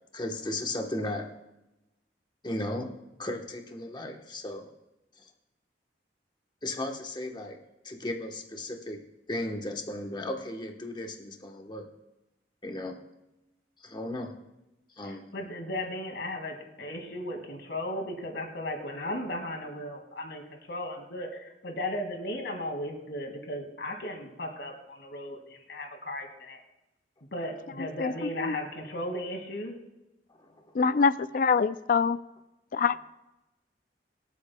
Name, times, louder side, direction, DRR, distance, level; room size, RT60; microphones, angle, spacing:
voice 1, 0.1-1.3 2.4-2.9 3.2-4.7 6.6-7.6 7.8-9.0 9.3-11.9 12.6-13.0 13.8-14.4 15.0-15.3 30.4-30.5, left 1 dB, 25° left, 2 dB, 1.1 m, -35 dB
voice 2, 15.0-20.4 20.7-26.6 27.3-29.8, left 1 dB, 70° left, 3 dB, 2.1 m, -36 dB
voice 3, 30.8-32.2 32.7-33.0, left 5 dB, 50° left, 14 dB, 0.4 m, -24 dB
24.0 x 8.5 x 2.2 m, 0.96 s
head